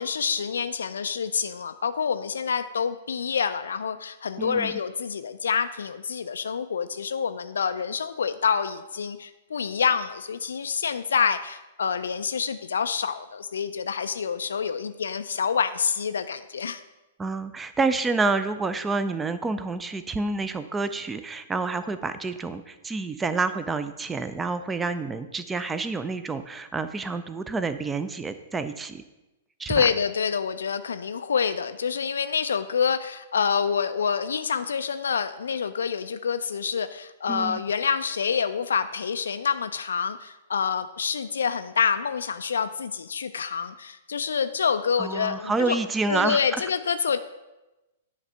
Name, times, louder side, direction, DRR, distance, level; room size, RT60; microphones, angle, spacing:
voice 1, 0.0-16.8 29.7-45.8 46.1-47.2, left 6 dB, 65° left, 10 dB, 0.3 m, -27 dB
voice 2, 4.4-4.8 17.2-29.0 29.6-29.9 37.3-37.6 45.0-46.7, right 3 dB, 10° right, 11 dB, 0.4 m, -28 dB
9.6 x 3.3 x 5.5 m, 1.0 s
figure-of-eight pair, 105°, 0 cm